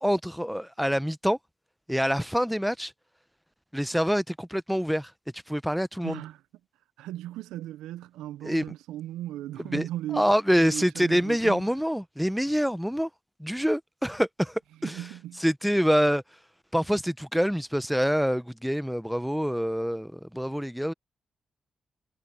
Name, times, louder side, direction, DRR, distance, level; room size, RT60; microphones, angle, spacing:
voice 1, 0.0-1.4 1.9-2.9 3.7-5.1 5.5-6.2 8.4-8.6 9.7-9.9 10.1-13.1 13.4-15.0 15.4-16.2 16.7-20.9, equal, ahead, 1.1 m, -26 dB
voice 2, 6.0-6.4 7.0-11.7 14.8-15.4, right 13 dB, 85° right, 0.7 m, -37 dB
hypercardioid pair, 40°, 0 cm